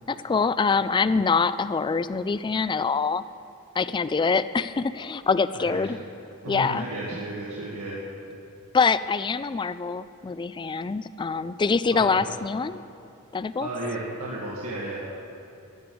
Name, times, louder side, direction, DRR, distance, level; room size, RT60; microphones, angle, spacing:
voice 1, 0.1-3.2 3.8-6.0 6.5-6.8 8.7-12.8 13.3-13.7, left 5 dB, 20° left, 14 dB, 0.3 m, -24 dB
voice 2, 6.4-8.0 11.9-12.3 13.6-15.2, right 1 dB, 85° right, -6 dB, 1.9 m, -33 dB
12.5 x 8.6 x 7.7 m, 2.7 s
head